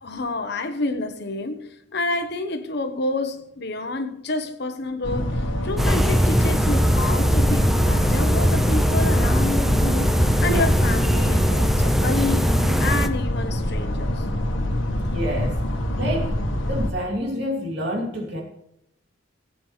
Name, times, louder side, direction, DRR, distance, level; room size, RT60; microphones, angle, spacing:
voice 1, 0.0-10.1 10.4-14.3, left 2 dB, 60° left, 1.1 m, -29 dB
sound 1, 5.0-16.9, left 1 dB, 80° left, 1.4 m, -25 dB
sound 2, 5.8-13.1, equal, ahead, 0.5 m, -20 dB
voice 2, 15.1-15.6 16.0-16.3 16.7-18.4, equal, 60° right, 3.0 m, -28 dB
17.5 x 8.7 x 3.3 m
head